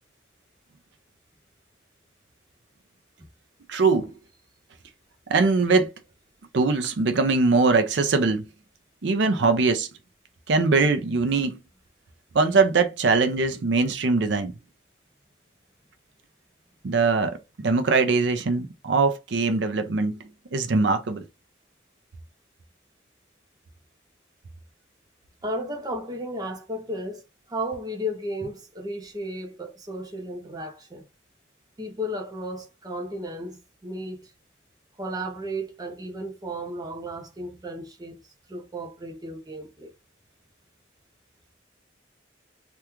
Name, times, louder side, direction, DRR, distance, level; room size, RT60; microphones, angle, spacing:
voice 1, 3.7-4.2 5.3-5.9 6.5-8.5 9.0-9.9 10.5-11.6 12.3-14.6 16.8-21.3, right 4 dB, 70° right, 0.5 m, -22 dB
voice 2, 25.4-27.2 27.5-31.0 31.8-34.3 35.0-38.2 38.5-39.9, equal, 20° right, 0.6 m, -34 dB
3.4 x 2.3 x 3.0 m
head